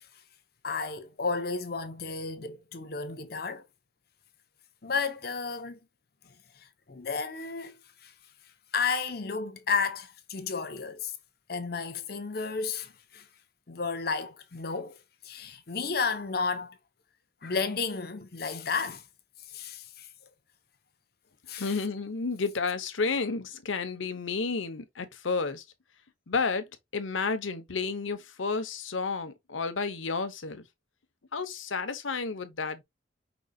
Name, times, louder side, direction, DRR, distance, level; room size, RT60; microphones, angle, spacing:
voice 1, 0.6-3.6 4.8-5.8 6.6-8.1 8.7-11.2 11.5-13.3 13.7-15.0 15.2-16.8 17.4-19.1 19.5-20.1 21.5-21.8, left 5 dB, 50° left, 0.8 m, -32 dB
voice 2, 21.5-25.6 26.3-26.7 26.9-30.6 31.3-32.8, left 4 dB, 85° left, 0.9 m, -31 dB
5.3 x 3.9 x 2.3 m
head